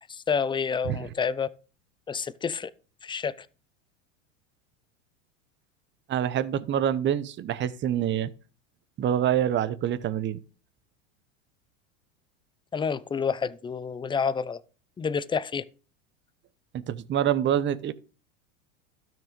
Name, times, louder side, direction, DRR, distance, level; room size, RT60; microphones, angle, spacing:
voice 1, 0.1-1.5 2.1-2.7 3.0-3.5 12.7-14.6 15.0-15.6, left 6 dB, 15° left, 0.5 m, -29 dB
voice 2, 6.1-8.3 9.0-10.4 16.7-17.9, right 10 dB, 30° right, 0.8 m, -26 dB
12.0 x 6.1 x 5.1 m
supercardioid pair, 110°, 37 cm